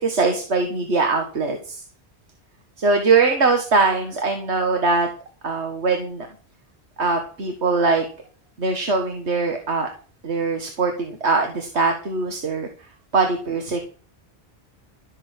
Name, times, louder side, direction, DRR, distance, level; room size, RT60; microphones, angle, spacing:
voice 1, 0.0-1.8 2.8-5.1 5.4-6.3 7.0-8.1 8.6-9.9 10.2-12.7 13.1-13.8, right 4 dB, 85° right, 4 dB, 1.9 m, -21 dB
14.0 x 6.6 x 7.5 m, 0.40 s
omnidirectional pair, 1.1 m